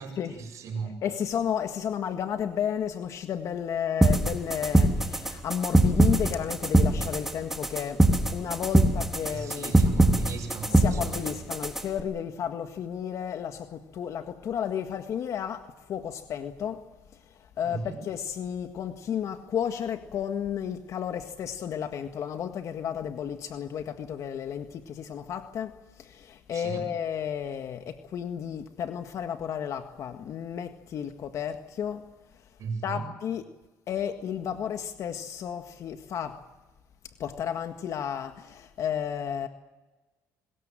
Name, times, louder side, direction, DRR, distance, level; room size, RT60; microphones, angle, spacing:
voice 1, 0.0-1.0 9.3-11.4 17.6-18.0 26.5-26.9 32.6-33.1, right 4 dB, 55° right, 0 dB, 5.8 m, -36 dB
voice 2, 1.0-8.0 8.3-9.7 10.7-15.6 15.9-16.8 17.6-25.7 26.0-32.0 32.8-33.4 33.9-36.4 37.2-39.5, left 8 dB, 55° left, 7 dB, 1.7 m, -32 dB
sound 1, 4.0-12.0, right 1 dB, 5° right, 3.1 m, -23 dB
25.0 x 20.5 x 7.6 m, 1.2 s
cardioid pair, 105°, 6 cm